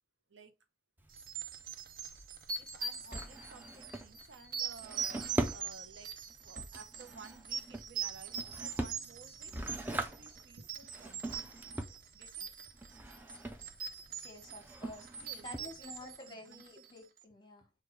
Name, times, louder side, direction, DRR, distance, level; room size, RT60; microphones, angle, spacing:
Drawer open or close, 1.0-16.2, right 1 dB, 10° right, 0.4 m, -42 dB
sound 1, 1.1-17.0, right 6 dB, 50° right, 0.6 m, -42 dB
voice 1, 2.6-11.4 11.9-12.5 15.2-15.5 15.8-16.8, right 3 dB, 90° right, 0.8 m, -55 dB
voice 2, 14.1-17.7, left 1 dB, 25° left, 1.1 m, -50 dB
4.8 x 2.4 x 4.5 m
head